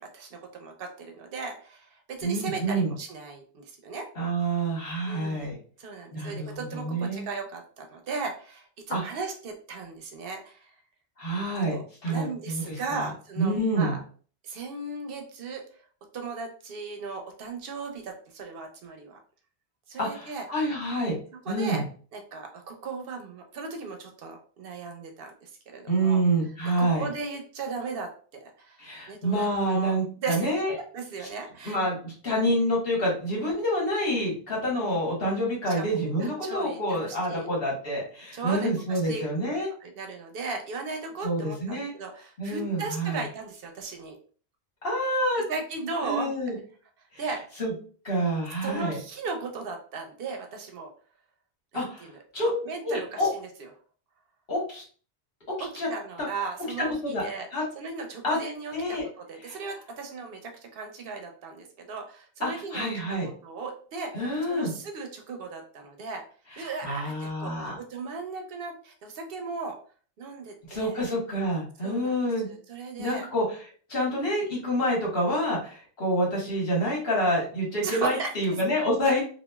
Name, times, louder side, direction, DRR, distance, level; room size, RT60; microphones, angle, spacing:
voice 1, 0.1-4.1 5.0-5.5 5.8-10.7 11.7-14.0 14.4-15.6 16.1-19.2 19.9-20.5 21.4-21.8 22.1-26.2 26.6-28.8 29.1-30.0 30.2-30.5 30.9-31.8 32.3-32.4 35.7-37.5 38.3-39.3 39.8-44.1 45.5-46.3 47.2-47.4 48.6-50.9 51.7-51.9 52.4-53.5 55.6-57.5 57.8-66.2 66.6-69.8 70.2-71.0 71.8-72.2 72.5-73.2 74.8-75.0 77.8-78.3, right 4 dB, 65° right, 4 dB, 0.7 m, -37 dB
voice 2, 2.2-2.9 4.2-5.6 6.1-7.3 8.9-9.0 11.2-13.1 13.4-14.0 20.0-21.2 21.5-21.8 25.9-27.1 28.8-30.7 31.6-39.7 41.2-41.9 42.4-43.2 44.8-45.4 46.0-46.6 47.1-47.3 47.6-47.7 48.0-49.0 51.7-52.5 52.8-53.3 54.5-54.8 55.7-55.9 56.2-56.3 56.8-57.2 57.5-57.6 58.2-58.4 58.7-59.1 59.4-59.6 62.4-63.3 64.1-64.7 66.5-67.8 70.7-72.5 73.0-73.6 73.9-79.2, right 1 dB, 65° left, -4 dB, 1.4 m, -27 dB
2.9 x 2.3 x 2.2 m, 0.42 s
omnidirectional pair, 1.1 m